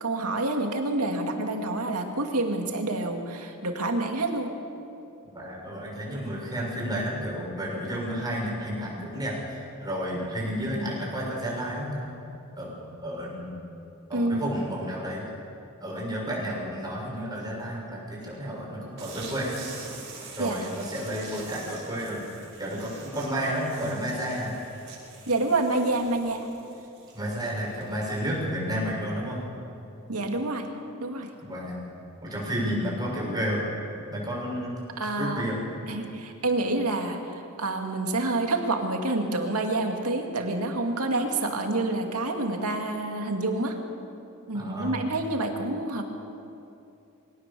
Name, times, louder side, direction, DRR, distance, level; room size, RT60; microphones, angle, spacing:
voice 1, 0.0-4.5 14.1-14.5 20.4-20.6 25.3-26.5 30.1-30.7 31.0-31.3 35.0-35.4 35.9-43.8 44.5-46.0, right 2 dB, 80° right, 3 dB, 2.3 m, -28 dB
voice 2, 5.3-12.0 12.6-13.5 14.1-15.2 15.8-19.6 20.4-22.2 22.6-24.6 27.1-29.4 31.4-31.8 32.2-33.6 34.1-34.7 35.0-35.6 44.5-45.1, equal, 20° right, -4 dB, 6.8 m, -31 dB
sound 1, 19.0-28.5, right 4 dB, 60° right, 6.7 m, -45 dB
22.5 x 17.5 x 6.9 m, 2.7 s
head